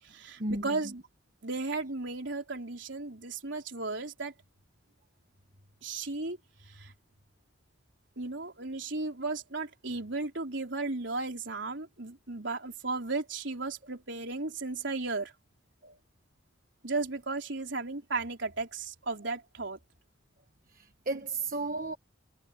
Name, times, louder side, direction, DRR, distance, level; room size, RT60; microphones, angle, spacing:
voice 1, 0.0-1.0 1.4-4.3 5.8-6.4 6.6-6.9 8.2-15.3 16.8-19.8, right 3 dB, 60° right, 4.5 m, -35 dB
voice 2, 20.7-22.0, right 2 dB, 45° right, 1.3 m, -34 dB
head